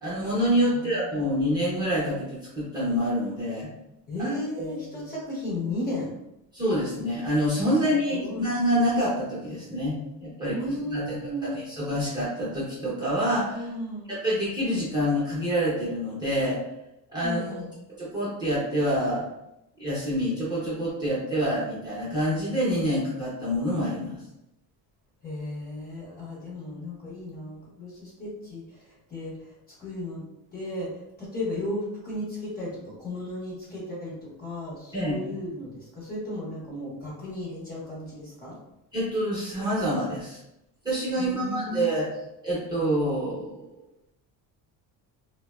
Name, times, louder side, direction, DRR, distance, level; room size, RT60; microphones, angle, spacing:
voice 1, 0.0-3.7 4.2-4.3 4.6-4.8 6.5-10.6 10.9-11.0 11.4-13.7 14.1-16.6 17.1-17.6 18.0-19.2 19.8-24.2 34.9-35.2 38.9-40.4 40.8-42.1 42.4-43.6, equal, 10° right, -9 dB, 0.7 m, -27 dB
voice 2, 0.7-1.1 4.1-6.1 7.8-8.4 10.5-11.5 13.5-14.1 17.2-17.7 25.2-30.2 30.5-38.6 41.2-41.9, left 1 dB, 20° left, -7 dB, 0.8 m, -35 dB
3.2 x 2.1 x 2.3 m, 0.87 s
cardioid pair, 170°, 44 cm